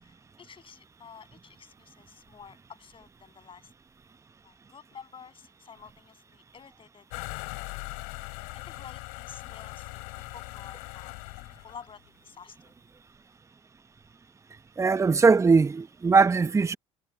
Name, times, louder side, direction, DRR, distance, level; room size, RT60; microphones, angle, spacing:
voice 1, 0.0-3.7 4.4-7.8 8.5-11.1 11.6-12.7, left 6 dB, 35° left, 6.9 m, -50 dB
sound 1, 7.1-11.9, left 37 dB, 70° left, 4.1 m, -40 dB
voice 2, 14.8-16.8, right 4 dB, 20° right, 0.8 m, -20 dB
hypercardioid pair, 65°, 15 cm